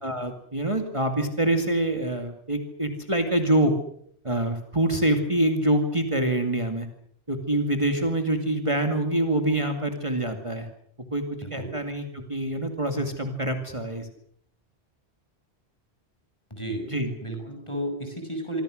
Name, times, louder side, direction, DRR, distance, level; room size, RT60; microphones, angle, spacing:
voice 1, 0.0-3.7 4.2-6.9 7.3-10.7 11.1-14.1 16.9-17.1, right 1 dB, 30° right, 5 dB, 2.4 m, -25 dB
voice 2, 16.5-16.8 17.2-18.6, right 1 dB, 25° left, 5 dB, 7.1 m, -32 dB
26.0 x 24.5 x 6.5 m, 0.66 s
omnidirectional pair, 1.1 m